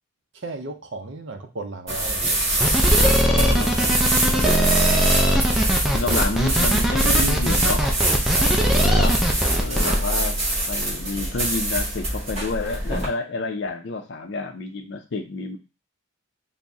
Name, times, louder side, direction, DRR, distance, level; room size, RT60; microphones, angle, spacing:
voice 1, 0.3-2.5 4.3-4.4 8.3-8.7, right 2 dB, 60° right, 5 dB, 0.6 m, -35 dB
sound 1, 1.9-13.1, right 1 dB, 30° right, 1.7 m, -24 dB
sound 2, 2.6-10.0, equal, ahead, 0.4 m, -20 dB
voice 2, 3.3-5.0 5.9-7.8 8.8-9.2 9.6-15.6, left 3 dB, 55° left, 3 dB, 0.5 m, -30 dB
4.0 x 2.1 x 3.5 m, 0.30 s
head